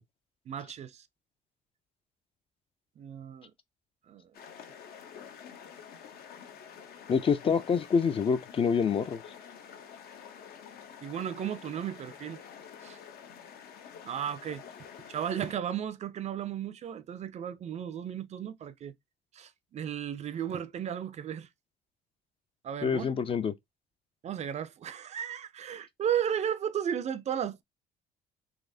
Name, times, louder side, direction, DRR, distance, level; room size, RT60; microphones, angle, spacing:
voice 1, 0.5-1.0 3.0-3.5 4.1-4.2 11.0-12.4 12.8-13.0 14.0-14.6 15.1-18.9 19.3-21.5 22.6-23.1 24.2-27.6, right 9 dB, 40° right, 0.4 m, -34 dB
sound 1, 4.3-15.5, left 7 dB, 65° left, 0.8 m, -48 dB
voice 2, 7.1-9.2 22.8-23.5, left 6 dB, 35° left, 0.4 m, -26 dB
4.0 x 2.8 x 2.6 m
cardioid pair, 110°, 17 cm